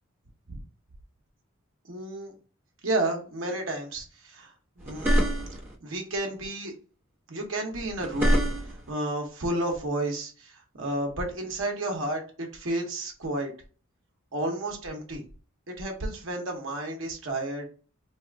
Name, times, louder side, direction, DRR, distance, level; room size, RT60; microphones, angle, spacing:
voice 1, 1.9-2.3 2.8-4.5 4.8-5.3 5.8-6.7 7.3-8.4 8.9-13.5 14.3-15.2 15.7-17.6, right 1 dB, 65° right, 2 dB, 0.9 m, -31 dB
sound 1, 4.8-5.7 7.7-8.9, equal, 10° right, 1.0 m, -25 dB
2.8 x 2.4 x 3.4 m, 0.38 s
head